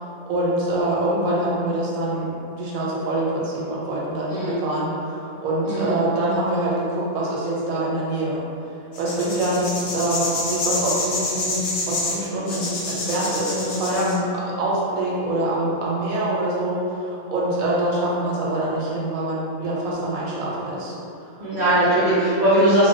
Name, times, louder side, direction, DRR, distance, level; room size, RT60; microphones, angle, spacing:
voice 1, 0.0-8.4 9.0-14.2 14.6-20.9 21.2-21.5, right 1 dB, 90° right, -5 dB, 1.0 m, -25 dB
voice 2, 4.3-4.6 5.6-5.9 13.9-14.0 19.8-20.0 21.4-22.9, right 1 dB, 50° right, -12 dB, 0.5 m, -20 dB
sound 1, 8.9-14.1, left 2 dB, 65° left, 0.8 m, -27 dB
2.3 x 2.1 x 2.5 m, 2.7 s
omnidirectional pair, 1.4 m